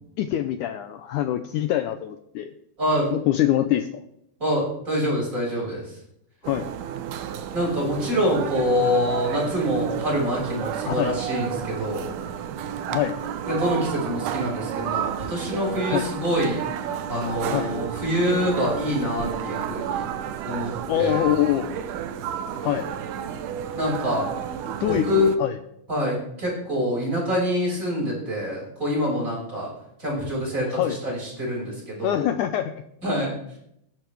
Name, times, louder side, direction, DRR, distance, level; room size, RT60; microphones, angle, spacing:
voice 1, 0.2-2.5 3.1-3.9 6.4-6.7 10.9-11.1 12.9-13.2 15.9-16.1 17.5-17.7 20.9-21.7 22.6-22.9 24.8-25.1 25.4-25.6 30.7-31.0 32.0-32.7, left 12 dB, 80° left, 9 dB, 1.8 m, -24 dB
voice 2, 2.8-3.1 4.4-6.0 7.5-12.2 13.5-16.7 17.1-20.1 20.4-21.3 23.7-24.3 24.9-25.3 25.9-29.7 30.0-32.3 33.0-33.6, equal, 20° right, -4 dB, 6.3 m, -26 dB
sound 1, 6.4-25.4, right 9 dB, 75° right, 2.1 m, -31 dB
19.5 x 10.5 x 3.4 m, 0.75 s
omnidirectional pair, 4.2 m